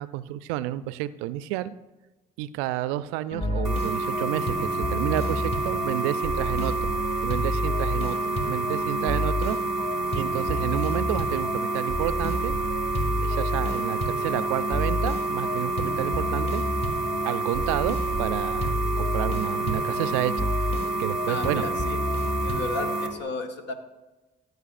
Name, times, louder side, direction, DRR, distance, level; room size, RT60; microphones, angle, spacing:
voice 1, 0.0-1.7 2.4-6.7 7.2-8.2 8.5-9.6 10.1-12.5 13.2-16.6 17.2-20.5 21.0-21.7, right 14 dB, 80° right, 16 dB, 0.4 m, -30 dB
sound 1, 3.3-23.2, left 1 dB, 30° left, 1.9 m, -31 dB
sound 2, 3.6-23.1, right 3 dB, 5° right, 2.1 m, -29 dB
voice 2, 21.3-22.0 22.4-23.7, left 3 dB, 60° left, 6 dB, 1.4 m, -33 dB
15.5 x 7.9 x 2.5 m, 1.1 s
hypercardioid pair, 50°, 21 cm